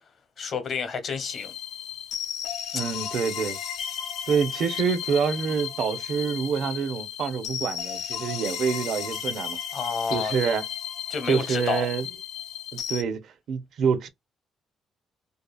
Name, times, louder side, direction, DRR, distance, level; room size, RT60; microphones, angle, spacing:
voice 1, 0.4-1.5 9.7-10.3 11.1-11.9, left 5 dB, 60° left, 0.9 m, -29 dB
sound 1, 1.2-13.0, left 9 dB, 90° left, 0.4 m, -34 dB
voice 2, 2.7-3.6 4.3-9.6 10.1-10.6 11.3-12.1 12.7-14.1, right 6 dB, 70° right, 0.5 m, -27 dB
2.7 x 2.4 x 2.2 m
cardioid pair, 90°, 0 cm